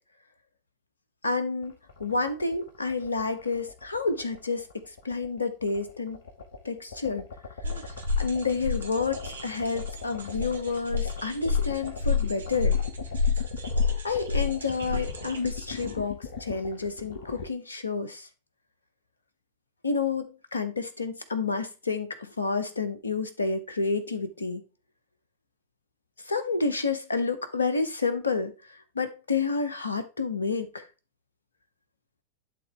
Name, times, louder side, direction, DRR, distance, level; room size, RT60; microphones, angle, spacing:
voice 1, 1.2-1.7 2.0-6.2 6.6-7.3 8.2-12.8 14.0-18.3 19.8-24.6 26.2-28.5 28.9-30.8, left 4 dB, 75° left, 1.1 m, -29 dB
sound 1, 1.6-17.4, left 5 dB, 60° left, 1.7 m, -41 dB
sound 2, 7.6-15.9, left 5 dB, 70° right, 1.2 m, -29 dB
11.5 x 3.9 x 3.2 m
figure-of-eight pair, 90°, 0 cm